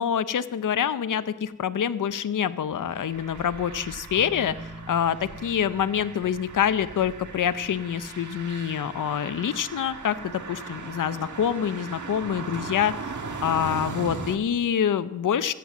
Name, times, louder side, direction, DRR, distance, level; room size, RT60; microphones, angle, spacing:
voice 1, 0.0-4.6 4.9-13.0 13.4-15.5, left 8 dB, 70° left, 13 dB, 0.6 m, -26 dB
sound 1, 2.7-14.4, right 4 dB, 60° right, 1.6 m, -38 dB
sound 2, 4.2-11.4, equal, 5° right, 3.8 m, -48 dB
15.5 x 9.0 x 7.2 m, 1.0 s
cardioid pair, 65°, 33 cm